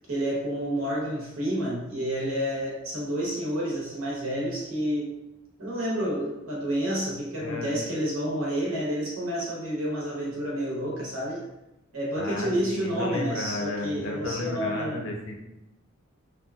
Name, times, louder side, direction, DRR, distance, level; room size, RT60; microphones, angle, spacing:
voice 1, 0.1-5.1 5.6-11.5 11.9-15.1, equal, 80° right, -4 dB, 0.9 m, -29 dB
voice 2, 7.4-7.7 12.2-15.4, left 2 dB, 65° left, 1 dB, 0.5 m, -33 dB
2.7 x 2.2 x 2.3 m, 0.92 s
head